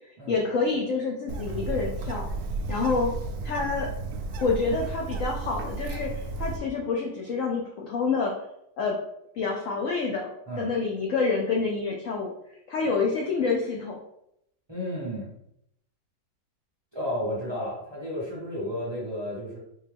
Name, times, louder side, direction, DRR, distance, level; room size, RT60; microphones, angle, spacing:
voice 1, 0.3-2.3 2.7-3.1 3.4-3.9 4.4-8.3 8.8-9.0 9.4-10.3 10.6-12.3 12.7-14.0, left 4 dB, 70° left, 0 dB, 0.7 m, -27 dB
Bird, 1.3-6.6, right 3 dB, 90° right, 0.7 m, -33 dB
voice 2, 14.7-15.3 16.9-19.6, left 1 dB, 20° right, -7 dB, 0.8 m, -32 dB
4.4 x 2.4 x 3.3 m, 0.78 s
omnidirectional pair, 1.9 m